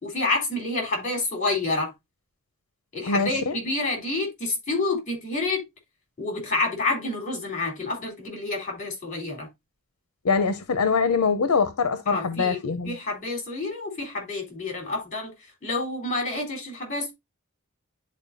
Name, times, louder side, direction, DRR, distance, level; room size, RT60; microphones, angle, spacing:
voice 1, 0.0-1.9 2.9-5.7 6.2-9.5 12.1-12.6 12.8-15.3 15.6-17.1, left 2 dB, 35° left, 3.7 m, -28 dB
voice 2, 3.1-3.6 10.2-12.9, left 5 dB, 80° left, 0.6 m, -23 dB
11.0 x 4.3 x 2.6 m
head